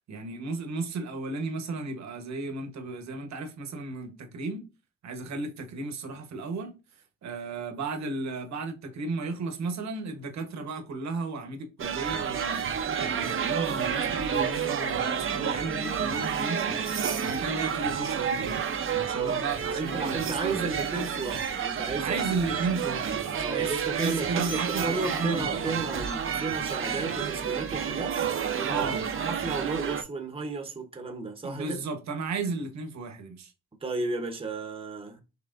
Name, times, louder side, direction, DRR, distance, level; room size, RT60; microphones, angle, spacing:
voice 1, 0.1-4.6 5.0-6.7 7.2-12.6 13.0-16.8 17.2-20.6 22.0-25.9 28.7-29.0 31.4-33.5, right 3 dB, 65° right, 1.2 m, -34 dB
sound 1, 11.8-30.0, right 7 dB, 45° right, 0.7 m, -30 dB
voice 2, 19.1-22.3 23.4-28.2 28.6-29.0 29.2-31.8 33.8-35.2, right 3 dB, 20° right, 0.9 m, -33 dB
5.9 x 3.1 x 2.5 m
cardioid pair, 90°, 30 cm